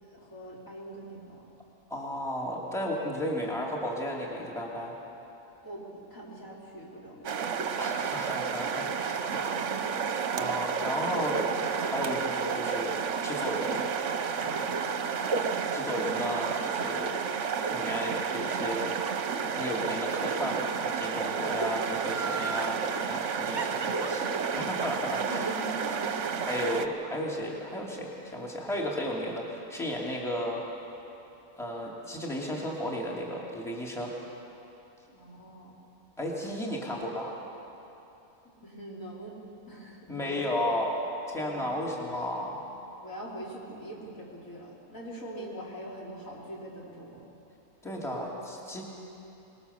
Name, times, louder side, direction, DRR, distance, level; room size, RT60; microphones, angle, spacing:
voice 1, 0.0-1.5 5.6-7.6 9.3-9.6 24.9-26.2 35.1-35.7 38.6-39.4 39.7-40.5 41.4-41.6 43.0-47.3, right 1 dB, 60° left, -4 dB, 4.3 m, -43 dB
voice 2, 1.9-4.9 7.8-9.1 10.4-11.4 11.8-13.8 14.4-15.3 15.7-17.1 17.7-18.9 19.5-22.8 23.1-25.5 26.4-30.6 31.6-34.1 36.2-37.4 40.1-40.9 41.3-42.6 47.8-48.8, equal, ahead, -3 dB, 2.5 m, -34 dB
sound 1, 7.2-26.9, right 6 dB, 55° right, 1.1 m, -31 dB
Laughter, 22.0-22.8 23.6-26.7 27.0-27.1, right 5 dB, 35° right, 1.0 m, -37 dB
24.5 x 20.0 x 7.0 m, 2.9 s
omnidirectional pair, 1.6 m